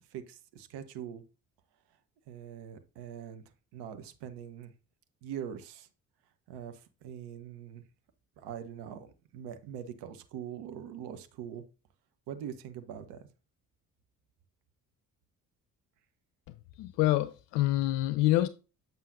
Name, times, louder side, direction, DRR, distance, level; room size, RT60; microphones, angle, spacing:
voice 1, 0.1-1.2 2.3-3.4 3.7-4.7 5.2-5.9 6.5-7.8 8.4-11.6 12.3-13.3, right 9 dB, 60° right, 1.0 m, -43 dB
voice 2, 16.8-18.5, left 15 dB, 65° left, 0.6 m, -26 dB
7.4 x 5.6 x 2.6 m
figure-of-eight pair, 45°, 46 cm